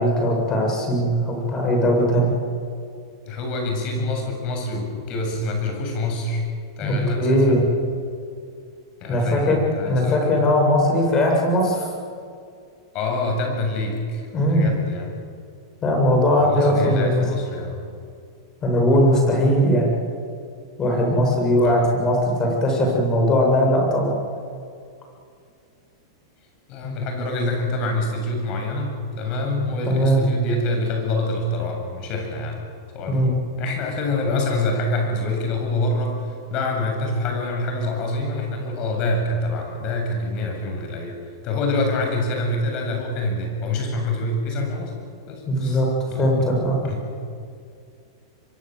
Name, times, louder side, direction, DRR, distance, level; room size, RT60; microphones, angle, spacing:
voice 1, 0.0-2.3 6.8-7.6 9.1-9.6 9.8-11.9 14.3-14.7 15.8-17.3 18.6-19.9 20.8-24.1 29.9-30.2 33.1-33.3 45.5-45.9 46.2-46.8, equal, 25° left, 0 dB, 7.5 m, -19 dB
voice 2, 3.2-6.4 6.8-7.7 9.0-10.2 12.9-15.1 16.4-17.8 21.6-21.7 26.7-32.6 32.9-41.2 41.4-44.9 45.3-45.8 46.1-46.5 46.8-47.1, left 2 dB, 40° left, 2 dB, 7.7 m, -26 dB
24.0 x 23.5 x 8.0 m, 2.3 s
supercardioid pair, 135°, 2 cm